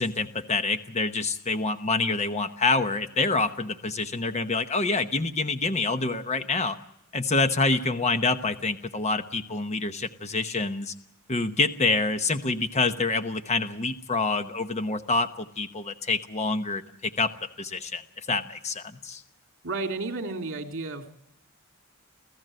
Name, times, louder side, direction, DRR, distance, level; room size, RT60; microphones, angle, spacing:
voice 1, 0.0-6.8 7.1-10.9 11.3-17.3 17.6-19.2, left 3 dB, 30° left, 9 dB, 1.0 m, -27 dB
voice 2, 19.6-21.2, right 3 dB, 60° right, 4 dB, 2.9 m, -32 dB
27.5 x 15.5 x 7.7 m, 0.81 s
head